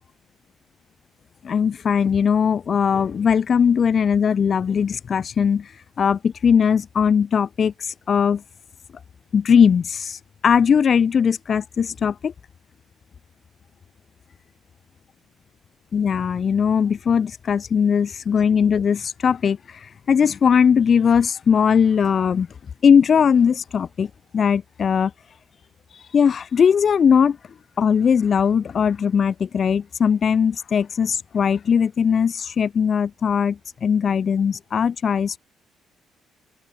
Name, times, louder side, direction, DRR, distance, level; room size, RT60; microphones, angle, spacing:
voice 1, 1.4-5.7 6.0-8.4 9.3-10.2 10.4-12.3 15.9-19.6 20.1-22.5 22.8-25.1 26.1-27.4 27.8-35.4, left 7 dB, 45° left, 2.1 m, -19 dB
cardioid pair, 90°, 0 cm